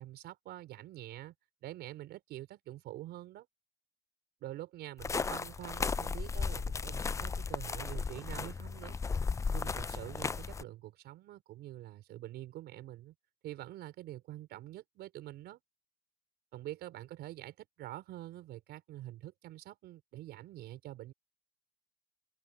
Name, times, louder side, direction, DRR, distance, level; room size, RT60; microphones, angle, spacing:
voice 1, 0.0-1.3 1.6-3.5 4.4-9.0 9.5-13.1 13.4-15.6 16.5-21.1, right 14 dB, 80° right, 5.1 m, -46 dB
sound 1, 5.0-10.6, left 5 dB, 20° left, 0.4 m, -35 dB
open air
cardioid pair, 110°, 17 cm